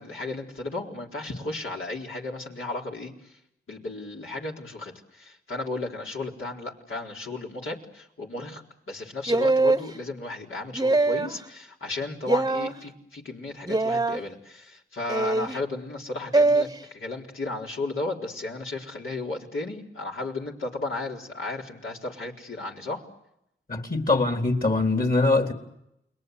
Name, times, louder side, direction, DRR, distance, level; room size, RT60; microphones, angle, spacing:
voice 1, 0.0-3.3 3.7-8.6 8.9-23.0, left 2 dB, 80° left, 4.2 m, -34 dB
sound 1, 9.3-9.9 10.7-11.4 12.3-12.7 13.7-14.2 15.1-15.6 16.3-16.7, right 2 dB, 20° right, 1.0 m, -22 dB
voice 2, 23.7-25.5, left 3 dB, 45° left, 3.6 m, -23 dB
29.5 x 21.5 x 8.2 m
cardioid pair, 45°, 21 cm